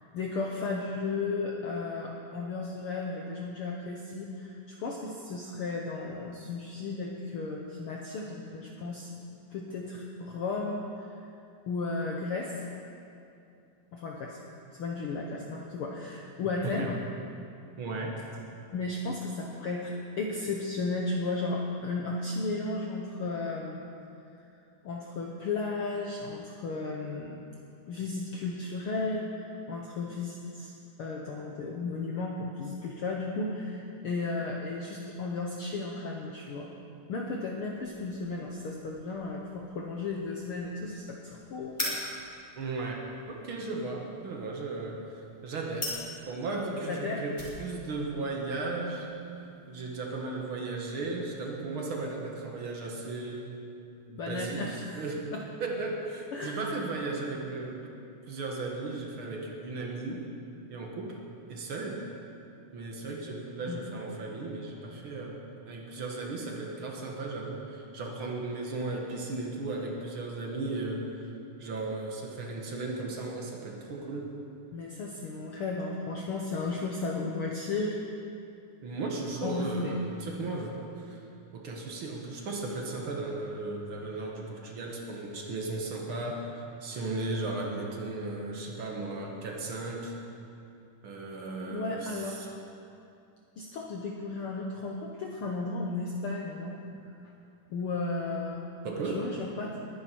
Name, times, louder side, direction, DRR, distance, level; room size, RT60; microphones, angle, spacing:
voice 1, 0.0-9.1 9.5-11.3 11.7-12.6 13.9-14.4 14.7-17.0 18.7-23.8 24.8-27.4 27.9-30.7 31.0-36.7 37.1-42.0 46.9-47.2 54.2-55.0 55.3-55.4 56.3-56.6 63.7-63.9 74.7-78.0 79.4-80.0 91.7-92.4 93.6-96.8 97.7-98.7 99.0-99.8, left 3 dB, 80° left, -1 dB, 1.2 m, -34 dB
voice 2, 17.8-18.2 42.6-45.0 45.4-49.1 49.7-53.5 54.1-55.3 55.6-57.9 58.3-60.3 60.7-61.2 61.5-62.0 62.7-71.3 71.6-74.3 78.8-81.2 81.5-90.2 91.0-92.5 98.8-99.3, right 3 dB, 50° right, 0 dB, 1.8 m, -36 dB
sound 1, 37.7-50.9, left 1 dB, 15° left, 3.1 m, -44 dB
21.0 x 10.5 x 4.5 m, 2.6 s
omnidirectional pair, 3.9 m